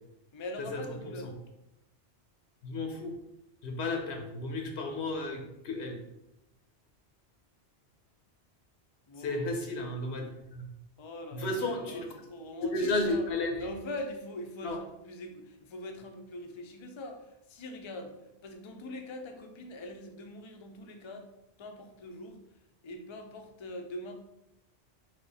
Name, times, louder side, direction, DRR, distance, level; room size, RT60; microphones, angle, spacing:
voice 1, 0.3-1.3 9.1-9.5 11.0-13.3 13.6-18.2 18.4-21.3 21.6-22.4 22.8-24.1, left 1 dB, 40° left, 4 dB, 0.4 m, -43 dB
voice 2, 2.6-3.1 3.6-6.0 9.2-10.2 10.5-10.7 11.3-12.1 12.6-13.7 14.6-14.8, left 2 dB, 75° left, 3 dB, 1.0 m, -33 dB
3.6 x 3.1 x 4.0 m, 0.87 s
omnidirectional pair, 1.1 m